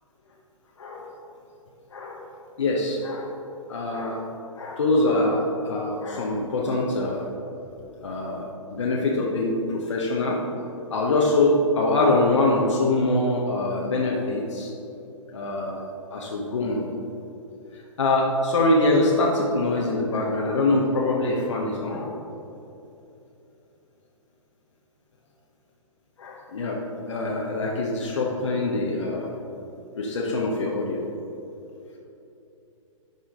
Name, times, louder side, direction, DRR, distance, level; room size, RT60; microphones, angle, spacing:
voice 1, 0.8-1.1 1.9-2.2 2.6-3.3 3.7-4.2 4.5-7.3 8.0-8.4 8.7-10.4 10.9-14.7 15.3-15.8 16.1-16.9 18.0-22.1 26.2-26.8 27.1-29.3 30.0-31.0, left 2 dB, 60° left, -2 dB, 1.1 m, -24 dB
11.0 x 5.6 x 3.8 m, 2.9 s
figure-of-eight pair, 120°, 17 cm